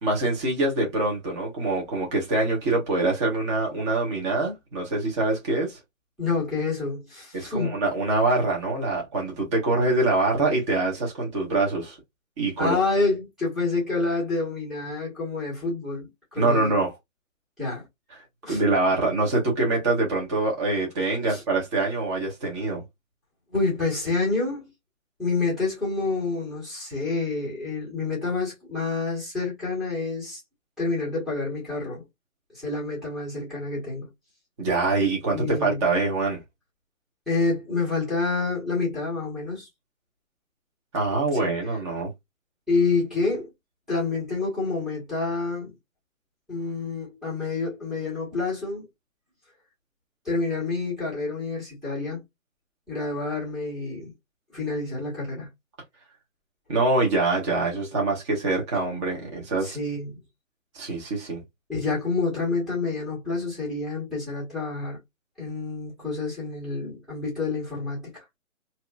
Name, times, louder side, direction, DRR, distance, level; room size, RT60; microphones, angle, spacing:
voice 1, 0.0-5.8 7.3-12.0 12.4-12.8 16.4-16.9 18.5-22.8 34.6-36.4 40.9-42.1 56.7-59.8 60.7-61.4, right 2 dB, 20° right, 1.1 m, -24 dB
voice 2, 6.2-7.8 12.6-16.7 17.6-17.9 18.4-18.6 21.3-21.4 23.5-24.7 25.2-30.4 30.8-32.0 32.5-34.1 35.3-35.8 37.3-39.7 41.4-41.5 42.7-43.5 43.9-45.7 46.5-48.9 50.2-52.2 52.9-54.1 54.5-55.5 59.6-60.2 61.7-65.0 65.4-68.2, left 3 dB, ahead, 1.2 m, -28 dB
2.9 x 2.9 x 2.4 m
hypercardioid pair, 150°, 41 cm